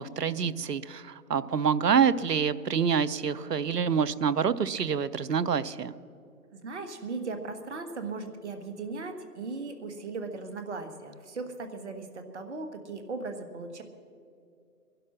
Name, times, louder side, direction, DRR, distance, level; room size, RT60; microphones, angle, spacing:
voice 1, 0.0-5.9, right 7 dB, 80° right, 17 dB, 0.8 m, -27 dB
voice 2, 6.5-13.8, right 3 dB, 45° right, 7 dB, 1.6 m, -38 dB
20.0 x 11.5 x 6.1 m, 2.5 s
figure-of-eight pair, 145°, 47 cm